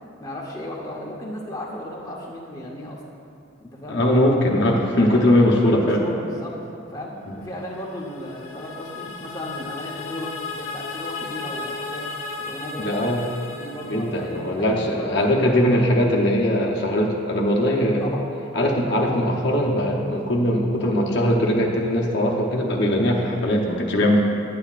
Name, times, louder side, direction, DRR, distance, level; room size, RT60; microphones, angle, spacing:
voice 1, 0.2-3.0 3.6-4.0 4.8-6.6 6.9-13.1 13.5-15.5 18.0-18.2, equal, 15° left, -3 dB, 0.8 m, -35 dB
voice 2, 3.9-6.0 7.3-7.4 12.8-13.2 13.9-18.1 18.5-24.2, left 1 dB, 55° left, -1 dB, 0.8 m, -20 dB
sound 1, 7.6-14.8, left 4 dB, 85° left, 1.0 m, -35 dB
11.0 x 8.9 x 2.5 m, 2.5 s
head